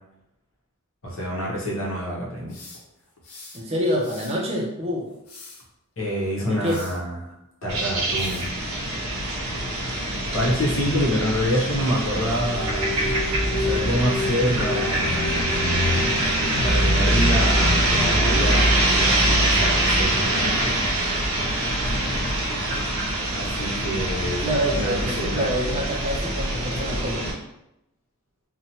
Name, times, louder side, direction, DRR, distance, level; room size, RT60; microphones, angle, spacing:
voice 1, 1.0-2.6 6.0-8.5 10.3-13.2 13.5-15.3 16.6-21.1 23.3-25.5, equal, 60° left, -5 dB, 0.9 m, -27 dB
sound 1, 2.5-3.6 4.0-4.4 5.1-5.6 6.7-7.0 8.2-8.5, left 3 dB, 85° left, 0.7 m, -43 dB
voice 2, 3.5-5.1 6.5-6.8 13.4-14.0 24.4-27.3, equal, 30° right, -2 dB, 0.4 m, -27 dB
sound 2, 7.7-27.3, right 1 dB, 70° right, 0.7 m, -23 dB
sound 3, 12.2-19.7, left 2 dB, 15° left, 0.9 m, -33 dB
2.8 x 2.2 x 2.8 m, 0.85 s
head